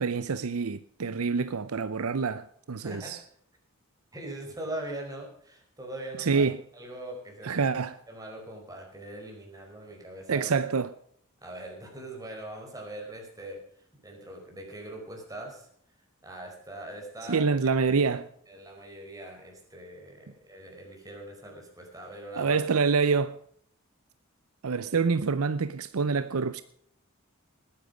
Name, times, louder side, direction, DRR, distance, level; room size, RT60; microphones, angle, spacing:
voice 1, 0.0-3.2 6.2-6.6 7.4-8.0 10.3-10.9 17.3-18.3 22.4-23.4 24.6-26.6, right 5 dB, 90° right, 0.6 m, -26 dB
voice 2, 2.8-3.2 4.1-6.4 6.7-7.6 8.1-10.5 11.4-13.6 14.0-15.7 16.2-17.5 18.5-22.6, right 1 dB, 15° right, 4.8 m, -41 dB
19.5 x 10.5 x 5.1 m
head